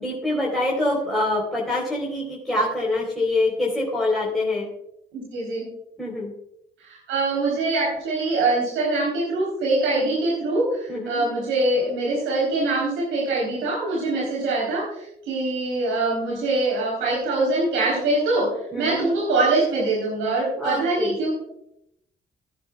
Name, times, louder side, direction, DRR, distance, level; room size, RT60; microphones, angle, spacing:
voice 1, 0.0-4.7 6.0-6.3 10.9-11.2 18.7-19.1 20.6-21.1, left 2 dB, ahead, -5 dB, 4.0 m, -25 dB
voice 2, 5.1-5.7 6.8-21.3, right 2 dB, 90° right, -4 dB, 4.0 m, -23 dB
18.5 x 9.9 x 2.4 m, 0.78 s
cardioid pair, 90°, 20 cm